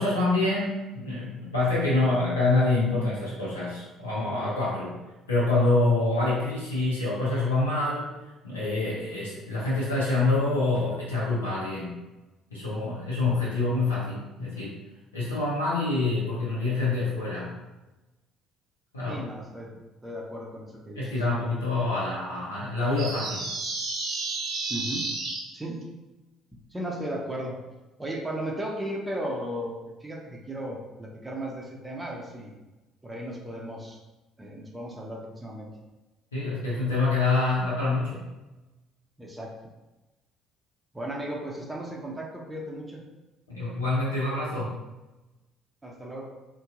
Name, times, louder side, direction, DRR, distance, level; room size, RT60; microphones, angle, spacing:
voice 1, 0.0-4.9 5.3-8.1 8.4-12.0 12.5-14.7 15.1-17.5 18.9-19.2 21.0-23.5 36.3-38.2 43.5-44.8, left 2 dB, 85° left, -8 dB, 0.6 m, -26 dB
voice 2, 19.1-19.7 20.0-21.2 24.7-25.1 25.5-25.8 26.7-27.5 28.0-32.6 33.0-34.0 34.4-35.7 39.2-39.5 40.9-43.0 45.8-46.3, right 1 dB, 15° right, -3 dB, 0.7 m, -35 dB
sound 1, 23.0-25.4, right 3 dB, 55° right, 0.8 m, -31 dB
2.7 x 2.3 x 3.6 m, 1.1 s
figure-of-eight pair, 50°, 0 cm